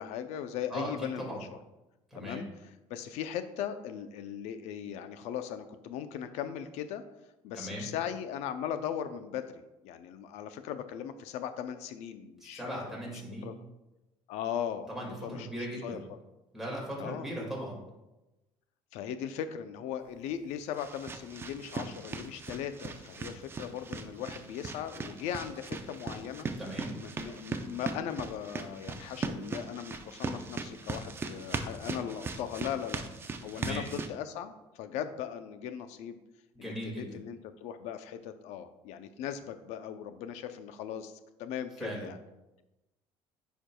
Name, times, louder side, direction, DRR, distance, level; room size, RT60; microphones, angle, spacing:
voice 1, 0.0-1.6 2.2-2.5 2.9-7.0 7.4-13.0 13.4-13.5 14.3-15.5 15.8-16.0 17.0-17.3 18.9-26.5 27.0-36.2 36.6-41.1 41.4-42.2, left 9 dB, 75° left, 10 dB, 0.5 m, -38 dB
voice 2, 0.7-1.4 2.1-2.4 7.5-7.9 12.4-13.5 14.9-16.0 16.5-17.8 26.6-27.0 33.5-33.9 36.6-37.2 41.8-42.1, equal, ahead, -4 dB, 2.0 m, -38 dB
sound 1, 20.1-34.1, right 4 dB, 20° right, 0.4 m, -39 dB
10.0 x 4.6 x 2.3 m, 1.0 s
cardioid pair, 140°, 12 cm